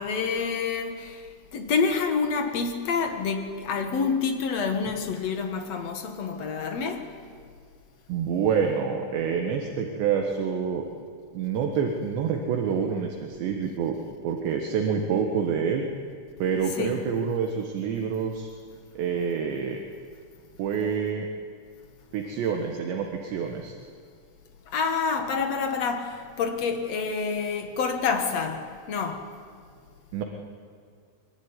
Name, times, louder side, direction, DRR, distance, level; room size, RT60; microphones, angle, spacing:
voice 1, 0.0-7.1 16.8-17.0 24.7-29.3, left 5 dB, 55° left, 1.9 m, -28 dB
voice 2, 8.1-10.9 11.3-14.0 14.2-15.9 16.4-18.5 19.0-19.8 20.6-21.3 22.1-23.8 30.1-30.2, right 6 dB, 70° right, 3.7 m, -27 dB
23.5 x 23.0 x 9.8 m
omnidirectional pair, 5.5 m